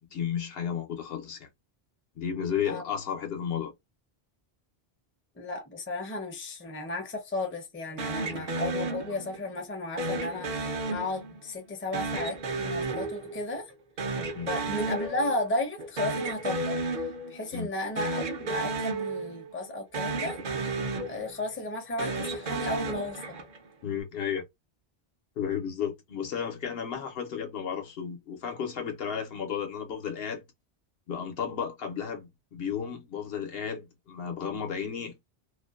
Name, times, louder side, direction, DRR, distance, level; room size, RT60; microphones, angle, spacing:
voice 1, 0.0-1.5 2.2-3.7 8.3-8.5 14.3-14.5 17.5-17.7 23.8-24.5 25.4-30.4 31.1-35.3, left 8 dB, 70° left, 0.9 m, -33 dB
voice 2, 5.4-13.7 14.4-16.8 17.3-20.4 21.1-23.4, left 2 dB, 15° left, 0.5 m, -34 dB
sound 1, 8.0-9.5 10.0-11.5 11.9-13.7 14.0-15.5 15.8-17.5 17.9-19.7 19.9-21.5 21.9-23.7, right 2 dB, 55° right, 0.6 m, -33 dB
2.5 x 2.2 x 2.3 m
omnidirectional pair, 1.0 m